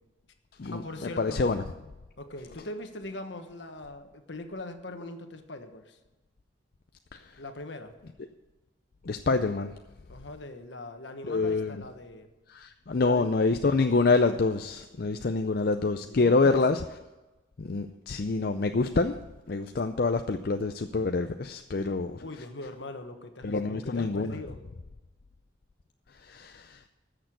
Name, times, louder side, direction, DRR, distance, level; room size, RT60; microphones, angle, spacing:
voice 1, 0.6-1.5 2.2-6.0 7.4-7.9 10.1-12.3 13.0-13.3 16.0-16.6 22.2-24.6, left 2 dB, 70° left, 7 dB, 1.3 m, -41 dB
voice 2, 1.2-1.6 7.1-7.2 9.1-9.7 11.3-11.8 12.5-16.8 17.6-19.2 19.5-22.2 23.4-24.3 26.2-26.8, left 3 dB, 50° left, 7 dB, 0.5 m, -26 dB
13.5 x 6.7 x 7.9 m, 1.1 s
head